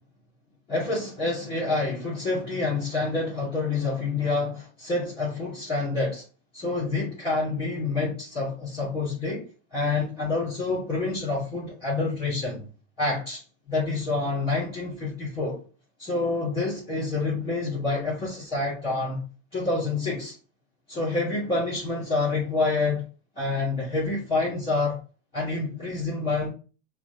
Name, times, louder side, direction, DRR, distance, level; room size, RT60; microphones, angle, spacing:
voice 1, 0.7-6.2 6.5-9.4 9.7-12.7 13.0-15.6 16.0-19.2 19.5-20.4 20.9-23.0 23.3-25.0 25.3-26.5, left 3 dB, 15° left, 2.4 m, -27 dB
5.9 x 2.2 x 4.0 m
supercardioid pair, 160°, 38 cm